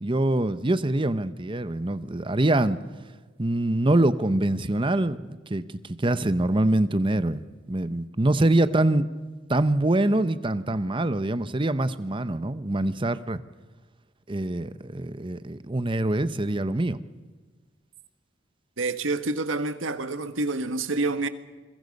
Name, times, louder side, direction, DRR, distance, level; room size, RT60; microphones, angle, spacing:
voice 1, 0.0-2.8 3.4-7.4 7.7-9.1 9.5-13.4 14.3-17.0, right 1 dB, 25° right, 0.9 m, -24 dB
voice 2, 18.8-21.3, right 3 dB, 85° right, 1.5 m, -27 dB
28.0 x 22.5 x 5.4 m
head